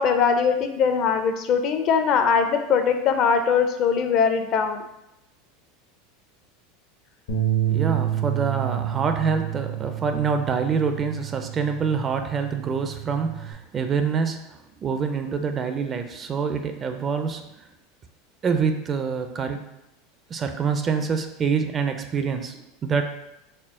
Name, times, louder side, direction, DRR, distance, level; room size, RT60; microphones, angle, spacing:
voice 1, 0.0-4.8, left 6 dB, 50° left, 7 dB, 0.4 m, -21 dB
Bass guitar, 7.3-13.5, right 11 dB, 80° left, 1.0 m, -29 dB
voice 2, 7.7-17.6 18.4-19.7 20.3-23.0, right 6 dB, 30° right, 7 dB, 0.4 m, -26 dB
4.3 x 2.0 x 3.6 m, 0.89 s
supercardioid pair, 110°, 0 cm